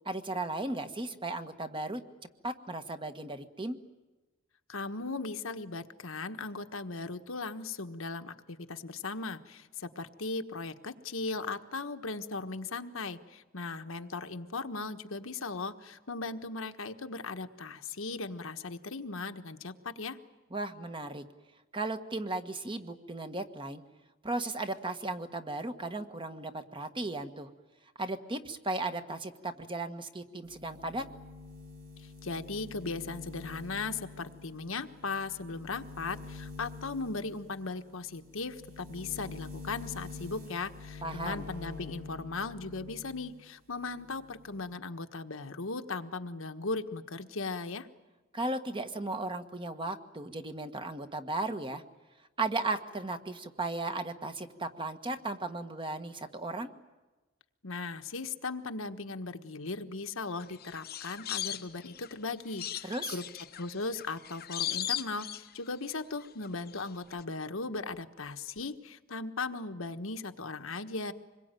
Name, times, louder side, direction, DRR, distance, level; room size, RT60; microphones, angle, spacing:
voice 1, 0.0-2.0 2.4-3.8 20.5-21.2 21.7-23.8 24.2-27.5 28.0-31.0 41.0-41.4 48.3-51.8 52.4-56.7 62.8-63.2, right 2 dB, 25° right, 8 dB, 1.5 m, -36 dB
voice 2, 4.7-20.2 32.0-47.9 57.6-63.2 63.6-71.1, left 3 dB, 75° left, 7 dB, 1.4 m, -38 dB
sound 1, 30.4-43.4 43.7-44.7, left 4 dB, 80° right, 3.5 m, -47 dB
sound 2, 60.4-62.1 62.6-65.9 66.2-66.9 67.1-67.2, left 11 dB, 50° left, 1.0 m, -38 dB
26.0 x 22.0 x 9.1 m, 1.2 s
head